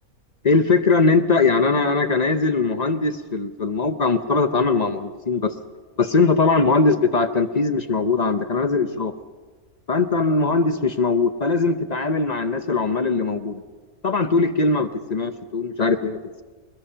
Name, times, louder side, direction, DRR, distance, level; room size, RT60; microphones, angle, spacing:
voice 1, 0.4-5.5 6.0-9.1 9.9-13.6 14.0-16.4, left 3 dB, 40° left, 9 dB, 0.7 m, -20 dB
23.5 x 20.5 x 5.7 m, 1.4 s
omnidirectional pair, 1.6 m